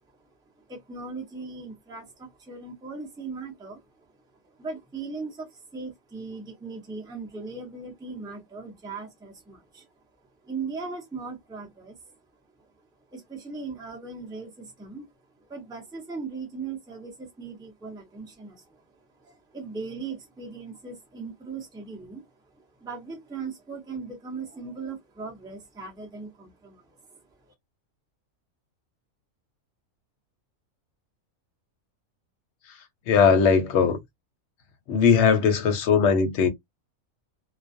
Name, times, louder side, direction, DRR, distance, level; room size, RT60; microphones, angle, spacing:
voice 1, 0.7-3.8 4.6-9.9 10.4-12.0 13.1-15.1 15.5-18.8 19.2-22.2 22.6-26.8, right 4 dB, 5° right, 0.4 m, -38 dB
voice 2, 33.1-34.0 34.9-36.5, left 6 dB, 65° left, 0.8 m, -19 dB
2.3 x 2.2 x 2.5 m
omnidirectional pair, 1.5 m